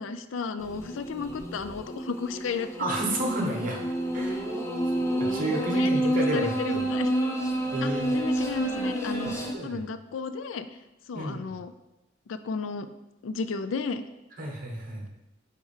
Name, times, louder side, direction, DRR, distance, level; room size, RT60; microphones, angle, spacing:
voice 1, 0.0-2.7 5.5-7.1 7.8-9.3 9.6-10.7 11.1-11.7 12.3-12.9 13.2-14.0, left 5 dB, 80° left, 11 dB, 0.4 m, -33 dB
sound 1, 0.6-9.5, right 1 dB, 15° left, 0.7 m, -29 dB
voice 2, 2.8-3.9 4.1-4.4 5.2-6.9 7.7-8.2 9.2-9.8 11.1-11.5 14.4-15.1, right 1 dB, 45° right, 1 dB, 1.3 m, -31 dB
4.6 x 4.4 x 5.5 m, 0.96 s
head